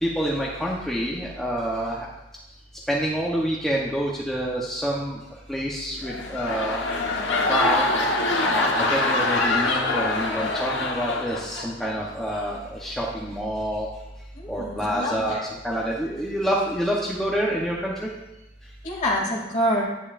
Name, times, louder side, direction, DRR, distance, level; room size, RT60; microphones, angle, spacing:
voice 1, 0.0-2.1 2.9-5.2 5.5-6.9 7.4-7.9 8.4-13.9 14.5-18.1, equal, ahead, -4 dB, 0.9 m, -27 dB
sound 1, 5.9-11.9 12.3-12.6, left 2 dB, 75° left, 1.1 m, -25 dB
voice 2, 14.3-15.4 18.8-19.8, equal, 40° left, -4 dB, 2.6 m, -26 dB
9.8 x 9.3 x 2.5 m, 0.98 s
head